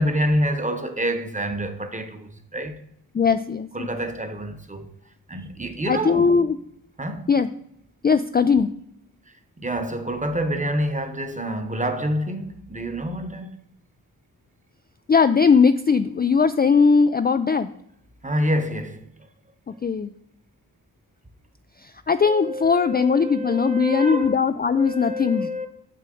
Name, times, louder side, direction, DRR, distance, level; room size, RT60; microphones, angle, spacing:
voice 1, 0.0-2.8 3.7-4.9 5.3-6.3 7.0-7.3 9.3-13.5 18.2-19.1 22.2-24.4 24.7-25.7, equal, 20° right, 1.1 m, -27 dB
voice 2, 3.1-3.9 5.9-6.6 7.3-7.5 8.0-8.7 15.1-17.7 19.7-20.1 21.8-25.5, left 5 dB, 25° left, 0.4 m, -19 dB
6.7 x 6.2 x 3.8 m
cardioid pair, 45°, 39 cm